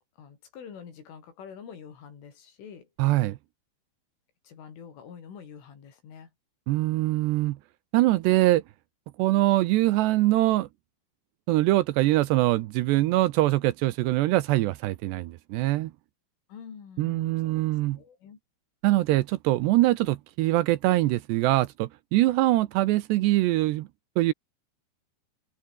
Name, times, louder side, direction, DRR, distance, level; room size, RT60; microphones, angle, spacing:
voice 1, 0.2-2.9 4.5-6.3 16.5-17.6 17.9-18.4, left 7 dB, 85° left, 7.3 m, -46 dB
voice 2, 3.0-3.4 6.7-7.6 7.9-8.6 9.2-10.7 11.5-15.9 17.0-18.0 18.8-23.9 24.2-24.3, right 17 dB, 75° right, 2.7 m, -23 dB
omnidirectional pair, 5.5 m